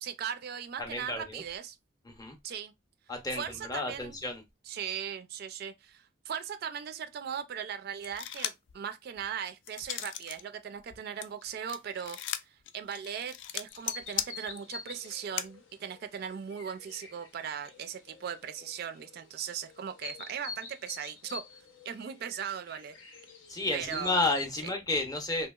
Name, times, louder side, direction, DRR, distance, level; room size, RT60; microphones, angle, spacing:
voice 1, 0.0-1.8 2.4-2.7 3.3-4.1 4.7-12.4 12.7-21.4 21.9-22.9 23.7-24.1 24.6-24.7, right 8 dB, 50° right, 0.3 m, -38 dB
voice 2, 0.8-1.4 2.0-2.4 3.1-4.4 23.5-25.5, left 2 dB, 20° left, 0.6 m, -32 dB
sound 1, 8.0-8.7 9.2-10.4 10.7-15.5, left 11 dB, 65° left, 0.3 m, -37 dB
sound 2, 13.7-24.5, left 5 dB, 85° left, 0.8 m, -47 dB
2.8 x 2.6 x 2.3 m
head